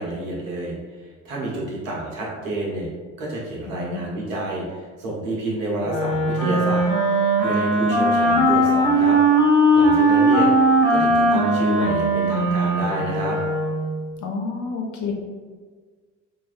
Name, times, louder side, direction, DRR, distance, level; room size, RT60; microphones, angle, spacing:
voice 1, 0.0-2.9 3.2-9.2 9.7-13.4, right 1 dB, 85° right, -4 dB, 1.0 m, -29 dB
voice 2, 3.7-4.1 14.2-15.1, left 5 dB, 50° left, 1 dB, 0.8 m, -30 dB
Wind instrument woodwind instrument, 5.8-13.9, right 1 dB, 65° left, 1.4 m, -19 dB
3.9 x 2.5 x 2.4 m, 1.5 s
hypercardioid pair, 60°, 38 cm